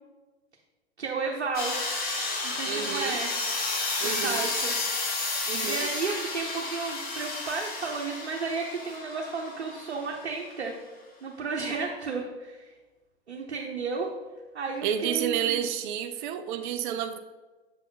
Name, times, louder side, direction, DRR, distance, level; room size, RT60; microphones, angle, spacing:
voice 1, 1.0-2.1 2.4-3.6 4.0-4.8 5.6-10.8 11.2-12.7 13.3-14.1 14.5-15.5, right 4 dB, 80° right, 0 dB, 0.9 m, -33 dB
sound 1, 1.5-10.1, left 3 dB, 30° left, 1.4 m, -32 dB
voice 2, 2.6-3.2 4.0-4.5 5.5-5.9 14.8-17.2, right 9 dB, 50° right, 8 dB, 0.6 m, -30 dB
6.3 x 5.2 x 3.8 m, 1.2 s
figure-of-eight pair, 95°, 32 cm